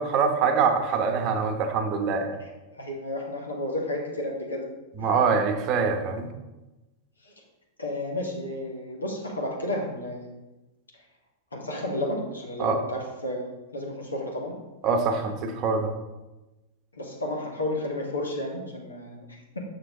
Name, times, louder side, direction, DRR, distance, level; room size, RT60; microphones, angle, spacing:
voice 1, 0.0-2.3 5.0-6.3 12.6-12.8 14.8-15.9, right 5 dB, 35° right, 6 dB, 1.0 m, -24 dB
voice 2, 2.4-4.6 5.0-5.1 7.2-7.3 7.8-10.3 11.5-14.5 16.9-19.6, left 1 dB, 80° left, -1 dB, 1.7 m, -32 dB
6.8 x 6.6 x 3.7 m, 1.1 s
figure-of-eight pair, 90°, 0 cm